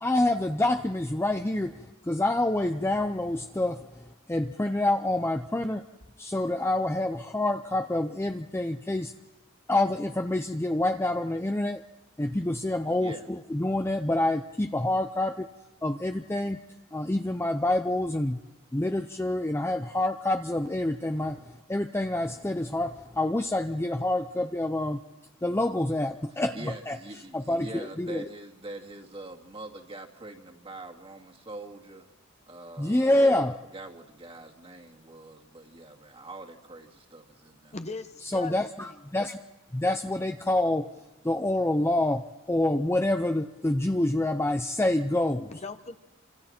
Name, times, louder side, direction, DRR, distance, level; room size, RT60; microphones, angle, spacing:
voice 1, 0.0-3.8 4.3-5.8 6.2-9.1 9.7-11.8 12.2-15.5 15.8-16.6 16.9-18.4 18.7-21.4 21.7-25.0 25.4-27.0 27.3-28.3 32.8-33.6 38.3-39.4 39.7-40.9 41.2-45.5, left 1 dB, 10° left, 6 dB, 0.6 m, -27 dB
voice 2, 13.0-13.3 26.5-32.1 32.5-33.1 33.7-37.8, right 2 dB, 30° right, 1 dB, 2.3 m, -44 dB
voice 3, 37.7-39.0 45.5-46.0, left 3 dB, 35° left, 8 dB, 1.0 m, -39 dB
28.5 x 26.0 x 4.4 m, 1.1 s
head